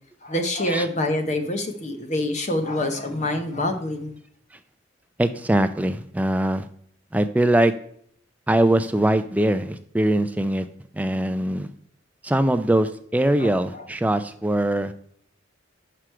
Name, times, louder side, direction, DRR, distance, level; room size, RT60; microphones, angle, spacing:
voice 1, 0.2-4.2 13.4-13.9, left 1 dB, 35° left, 6 dB, 0.8 m, -26 dB
voice 2, 5.2-6.6 7.1-7.7 8.5-10.7 10.9-11.7 12.2-14.9, right 1 dB, 5° right, 10 dB, 0.3 m, -22 dB
6.1 x 4.9 x 4.4 m, 0.65 s
head